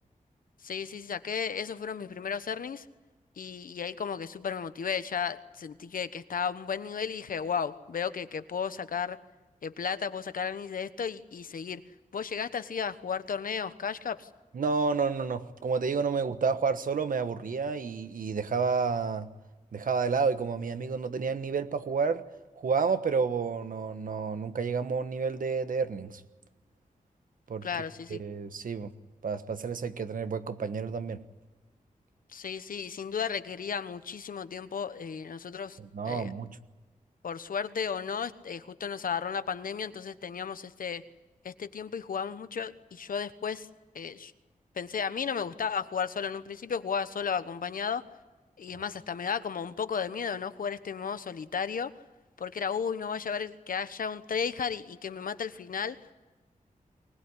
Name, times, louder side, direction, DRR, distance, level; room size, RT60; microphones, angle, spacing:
voice 1, 0.6-2.8 3.4-9.2 9.6-11.8 12.1-14.3 27.6-28.2 32.3-35.8 36.1-36.3 37.2-41.0 41.4-43.7 43.9-44.3 44.8-48.0 48.6-51.9 52.4-56.0, left 6 dB, 85° left, 1.1 m, -34 dB
voice 2, 14.5-19.3 19.7-22.2 22.6-26.2 27.5-27.7 28.1-28.9 29.2-31.2 35.8-36.6, right 5 dB, 80° right, 1.3 m, -30 dB
24.0 x 20.0 x 9.8 m
wide cardioid pair, 125°, 14 cm